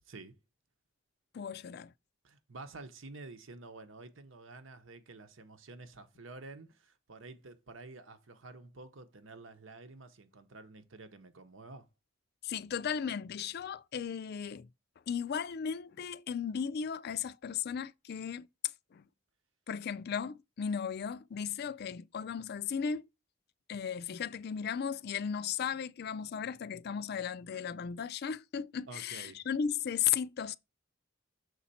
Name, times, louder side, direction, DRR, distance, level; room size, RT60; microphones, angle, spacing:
voice 1, 1.3-1.9 12.4-14.7 15.1-18.5 18.9-19.0 19.7-23.1 23.7-30.6, left 7 dB, 55° left, 0.4 m, -36 dB
voice 2, 2.2-11.9 28.9-29.4, right 3 dB, 75° right, 1.0 m, -50 dB
6.6 x 4.2 x 4.2 m
head